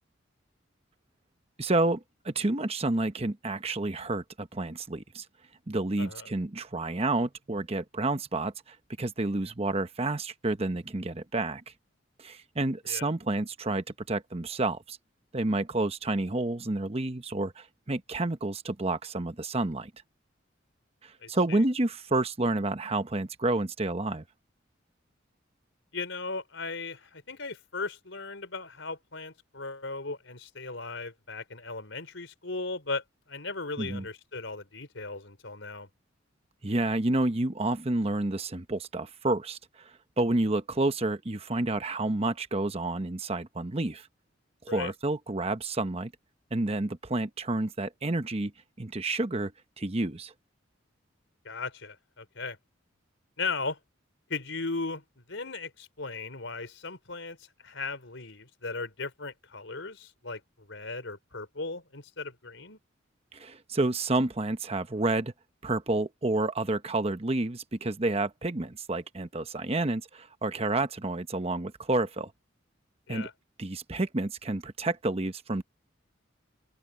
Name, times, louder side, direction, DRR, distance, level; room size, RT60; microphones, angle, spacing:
voice 1, 1.6-5.2 5.7-11.6 12.2-15.0 15.3-19.9 21.0-24.2 33.8-34.0 36.6-39.9 40.2-44.1 44.7-46.1 46.5-48.5 48.8-49.5 49.8-50.3 63.3-65.3 65.6-72.3 73.1-73.3 73.6-75.6, right 2 dB, 30° right, 1.0 m, -29 dB
voice 2, 6.0-6.3 12.9-13.1 21.2-21.6 25.9-35.9 44.7-44.9 51.4-52.6 53.4-53.8 54.3-62.8 73.1-73.3, left 3 dB, 75° left, 4.3 m, -37 dB
open air
head